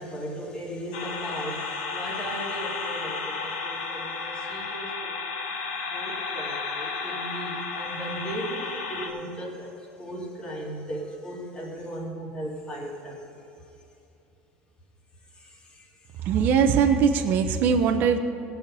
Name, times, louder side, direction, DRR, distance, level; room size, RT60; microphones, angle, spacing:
voice 1, 0.0-5.3 5.9-13.5 15.3-15.9, right 1 dB, 20° left, -3 dB, 2.8 m, -37 dB
sound 1, 0.9-9.1, left 4 dB, 85° left, 1.5 m, -33 dB
voice 2, 16.2-18.2, right 6 dB, 55° right, 5 dB, 0.8 m, -21 dB
17.0 x 5.8 x 6.9 m, 2.9 s
supercardioid pair, 120°, 4 cm